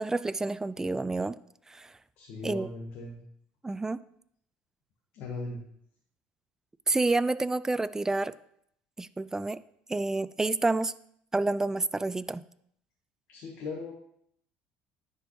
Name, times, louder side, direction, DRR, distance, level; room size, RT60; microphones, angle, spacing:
voice 1, 0.0-1.4 1.7-1.9 2.4-2.7 3.6-4.0 6.9-8.3 9.0-9.6 9.9-10.9 11.3-12.4, right 2 dB, 15° right, 16 dB, 0.3 m, -29 dB
voice 2, 2.2-3.2 5.1-5.6 13.3-13.9, left 3 dB, 70° left, -1 dB, 1.5 m, -38 dB
10.0 x 4.9 x 3.2 m, 0.69 s
supercardioid pair, 90°, 4 cm